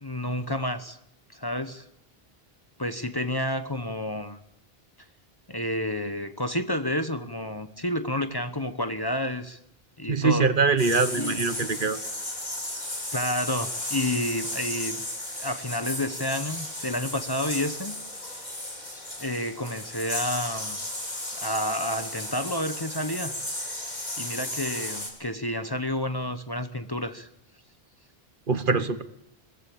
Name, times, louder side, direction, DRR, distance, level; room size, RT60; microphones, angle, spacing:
voice 1, 0.0-1.0 1.3-1.9 2.8-4.4 5.5-9.6 10.0-10.5 11.1-11.4 13.1-15.0 15.4-18.0 18.4-18.5 19.2-20.8 21.4-23.3 24.2-27.3, left 1 dB, 25° left, 9 dB, 0.9 m, -30 dB
voice 2, 10.1-12.0 28.5-29.0, right 4 dB, 55° right, 12 dB, 1.2 m, -23 dB
sound 1, 10.8-25.1, left 1 dB, 45° left, 4.2 m, -34 dB
20.5 x 15.0 x 8.6 m, 0.81 s
omnidirectional pair, 1.1 m